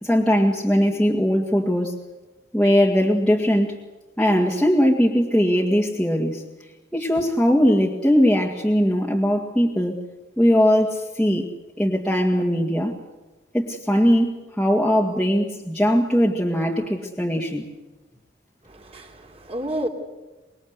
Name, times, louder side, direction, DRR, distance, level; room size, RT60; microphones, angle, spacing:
voice 1, 0.0-1.9 2.5-3.8 4.2-6.4 6.9-10.0 10.4-11.5 11.8-12.9 13.5-17.6, equal, 5° left, -4 dB, 2.1 m, -20 dB
voice 2, 18.6-19.9, right 1 dB, 30° right, 3 dB, 3.2 m, -30 dB
25.5 x 22.5 x 8.2 m, 1.1 s
head